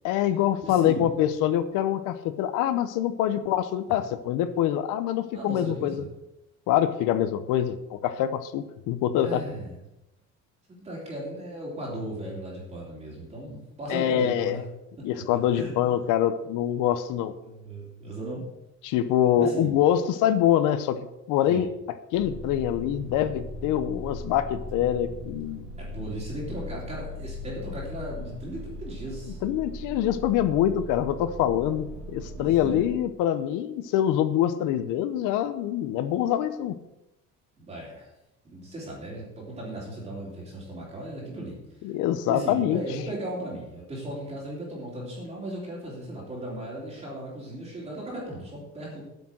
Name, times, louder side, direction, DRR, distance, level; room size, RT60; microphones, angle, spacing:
voice 1, 0.0-6.0 6.7-9.4 13.9-14.6 15.0-17.3 18.8-21.0 21.3-21.7 22.1-25.6 29.4-36.8 41.8-42.8, left 11 dB, 90° left, 11 dB, 0.8 m, -25 dB
voice 2, 0.6-1.1 5.3-6.1 8.9-9.8 10.7-14.6 15.1-15.7 17.4-18.5 19.3-19.7 21.5-21.7 25.8-29.4 32.4-32.9 37.6-38.1 38.4-41.6 42.3-49.0, right 1 dB, 20° right, -5 dB, 3.3 m, -36 dB
sound 1, 22.1-32.8, left 1 dB, 70° right, 1.6 m, -39 dB
8.7 x 6.3 x 7.4 m, 0.89 s
cardioid pair, 170°, 30 cm